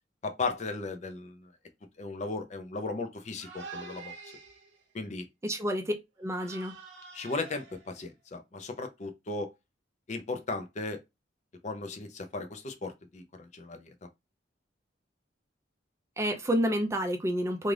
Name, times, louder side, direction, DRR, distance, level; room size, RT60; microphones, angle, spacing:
voice 1, 0.2-1.5 2.0-4.1 4.9-5.3 7.1-9.5 10.1-11.0 11.6-13.9, left 3 dB, 40° left, 0.5 m, -36 dB
sound 1, 3.4-4.8 6.3-8.1, right 4 dB, 70° right, 0.7 m, -47 dB
voice 2, 5.4-5.9 6.2-6.7 16.2-17.7, equal, 15° right, 0.4 m, -29 dB
2.5 x 2.4 x 3.2 m
head